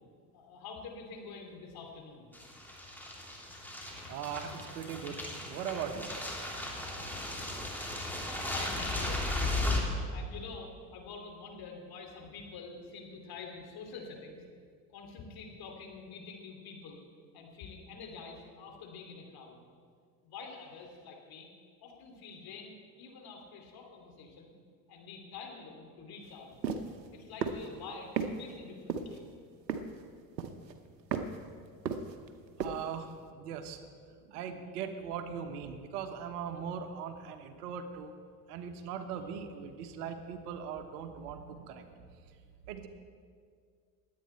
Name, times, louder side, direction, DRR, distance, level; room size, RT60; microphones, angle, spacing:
voice 1, 0.3-2.3 8.2-9.5 10.1-14.4 14.9-17.0 17.3-19.6 20.2-21.5 21.8-24.5 24.9-26.5 27.1-29.3, left 4 dB, 45° left, 2 dB, 2.8 m, -47 dB
sound 1, 2.3-9.8, left 2 dB, 5° left, 2.8 m, -36 dB
voice 2, 4.1-6.1 32.6-33.8 34.2-38.1 38.5-42.0 42.7-42.9, right 7 dB, 70° right, 8 dB, 1.3 m, -40 dB
sound 2, 26.6-26.9 27.4-27.7 28.2-28.3 28.9-29.2 29.7-30.0 30.4-30.7 31.1-31.4 31.9-32.3 32.6-32.8, right 6 dB, 90° right, 0.9 m, -33 dB
20.5 x 8.7 x 4.4 m, 2.1 s
hypercardioid pair, 75°, 49 cm